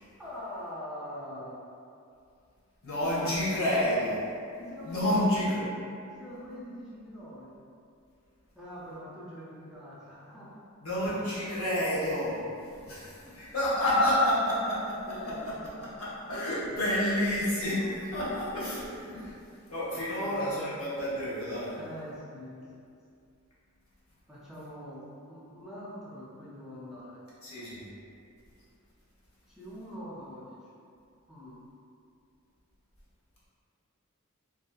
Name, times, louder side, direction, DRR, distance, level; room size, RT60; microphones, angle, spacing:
voice 1, 0.2-1.6 3.0-3.3 4.6-5.6 6.2-7.7 8.5-10.6 13.2-13.4 15.1-15.5 15.7-15.9 19.9-20.5 21.8-22.7 24.3-27.2 29.5-30.6 31.3-31.6, equal, ahead, -9 dB, 0.4 m, -44 dB
voice 2, 2.8-4.2 4.8-5.6 10.8-15.5 15.8-19.4 19.7-21.7 27.4-27.8, left 1 dB, 75° left, -8 dB, 0.8 m, -29 dB
2.7 x 2.3 x 2.2 m, 2.4 s
head